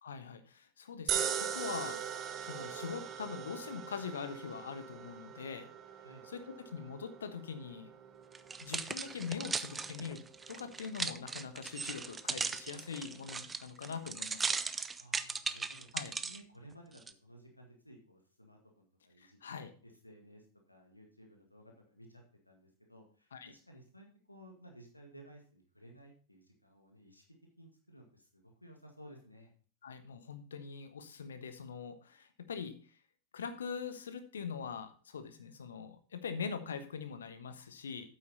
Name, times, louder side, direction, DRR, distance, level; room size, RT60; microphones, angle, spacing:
voice 1, 0.0-2.0 2.4-5.7 6.3-7.9 8.6-10.2 10.5-14.6 15.9-16.1 19.2-19.7 23.3-23.5 29.8-32.8 33.3-38.1, left 6 dB, 65° left, 10 dB, 1.2 m, -43 dB
sound 1, 1.1-13.4, right 8 dB, 30° right, 1.1 m, -42 dB
sound 2, 8.4-16.4 17.0-17.1, right 4 dB, 15° right, 0.6 m, -38 dB
voice 2, 15.0-27.2 27.6-29.5, right 1 dB, 85° left, 1 dB, 1.8 m, -57 dB
8.8 x 8.4 x 4.1 m, 0.41 s
figure-of-eight pair, 90°, 0 cm